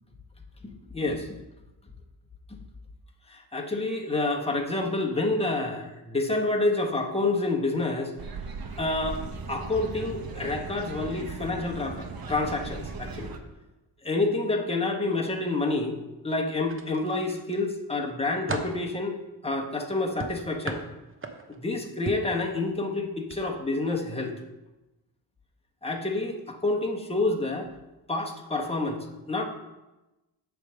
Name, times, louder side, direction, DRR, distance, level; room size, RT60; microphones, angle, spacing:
voice 1, 0.6-1.4 2.5-2.6 3.3-8.1 8.8-9.2 9.5-13.3 14.0-16.0 16.2-19.2 19.4-20.8 21.5-24.3 25.8-27.7 28.1-29.4, left 2 dB, 15° left, 1 dB, 1.2 m, -28 dB
sound 1, 8.2-13.4, right 4 dB, 50° right, 0.9 m, -38 dB
sound 2, 16.6-17.5 18.0-18.8 20.2-21.6 22.1-22.4 23.2-23.4 23.8-24.0, right 3 dB, 30° right, 0.9 m, -36 dB
8.1 x 3.6 x 6.4 m, 1.0 s
cardioid pair, 75°, 45 cm